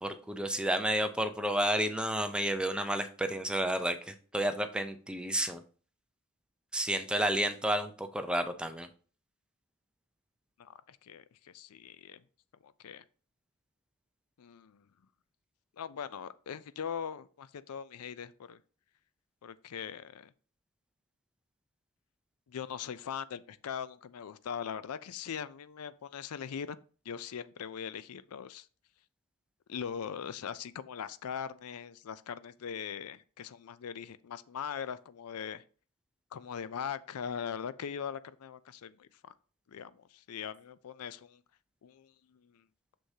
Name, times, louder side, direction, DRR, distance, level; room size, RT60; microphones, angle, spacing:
voice 1, 0.0-5.6 6.7-8.9, right 1 dB, 5° right, 0.5 m, -31 dB
voice 2, 10.6-12.2 12.6-13.0 14.4-14.8 15.8-18.6 19.4-20.3 22.5-26.8 27.1-28.7 29.7-35.6 36.3-39.3 39.7-41.4 41.8-42.6, left 7 dB, 80° left, 0.4 m, -41 dB
6.4 x 6.2 x 2.8 m
head